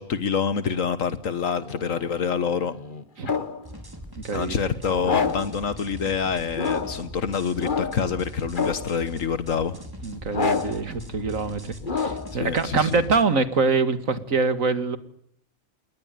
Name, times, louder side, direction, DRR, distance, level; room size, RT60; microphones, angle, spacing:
voice 1, 0.0-2.7 4.3-9.8 12.4-13.0, left 6 dB, 80° left, 13 dB, 1.7 m, -26 dB
sound 1, 1.6-3.6 5.0-5.6 6.5-7.1 7.6-8.1 8.5-9.0 10.3-10.9 11.8-12.4, left 5 dB, 40° left, 1.6 m, -28 dB
sound 2, 3.6-13.2, equal, 15° right, 4.5 m, -41 dB
voice 2, 4.2-4.6 10.0-15.0, right 4 dB, 85° right, 12 dB, 2.4 m, -24 dB
29.0 x 21.5 x 9.2 m, 0.69 s
omnidirectional pair, 1.4 m